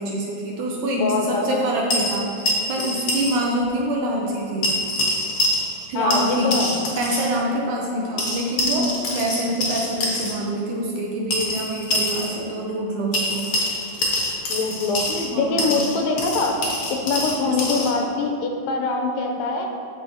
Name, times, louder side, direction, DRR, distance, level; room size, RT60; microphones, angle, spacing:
voice 1, 0.0-4.8 5.9-6.6 7.0-13.5 15.3-15.8 17.5-17.8, right 1 dB, 75° right, -2 dB, 1.9 m, -26 dB
voice 2, 1.0-1.6 5.9-6.8 14.5-16.6 16.9-19.7, left 3 dB, 80° left, 2 dB, 2.2 m, -23 dB
sound 1, 1.9-3.4 3.6-3.7 4.6-5.9 6.1-7.3 8.2-10.3 11.3-12.3 13.1-15.3 15.6-17.9, left 1 dB, 55° left, 1.5 m, -25 dB
14.0 x 5.4 x 2.8 m, 2.7 s
omnidirectional pair, 4.1 m